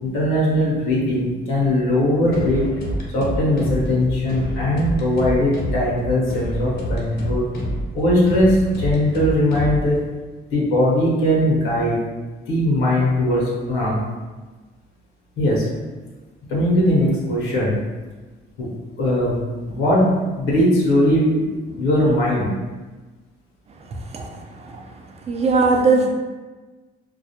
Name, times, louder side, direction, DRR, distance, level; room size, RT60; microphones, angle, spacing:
voice 1, 0.0-2.8 3.1-7.5 7.9-10.0 10.5-12.0 12.5-14.0 15.4-15.7 16.5-17.8 18.6-18.7 19.0-19.4 19.6-22.5, left 1 dB, 85° left, -5 dB, 0.8 m, -19 dB
sound 1, 2.3-10.0, equal, 55° left, 0.6 m, -28 dB
voice 2, 25.3-26.1, right 3 dB, 30° right, 2 dB, 0.4 m, -19 dB
2.3 x 2.1 x 2.8 m, 1.3 s
cardioid pair, 90°, 20 cm